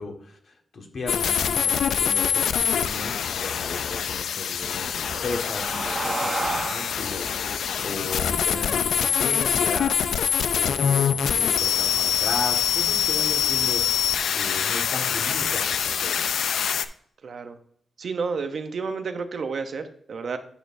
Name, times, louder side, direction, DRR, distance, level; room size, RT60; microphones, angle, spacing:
voice 1, 0.0-14.0 14.3-16.3, left 3 dB, 55° left, 2 dB, 1.6 m, -36 dB
sound 1, 1.1-16.9, left 7 dB, 85° left, 0.4 m, -24 dB
sound 2, 4.8-9.9, right 2 dB, 25° right, 1.1 m, -34 dB
voice 2, 17.2-17.6 18.0-20.4, right 4 dB, 55° right, 8 dB, 0.7 m, -30 dB
8.9 x 6.5 x 2.6 m, 0.64 s
wide cardioid pair, 140°, 0 cm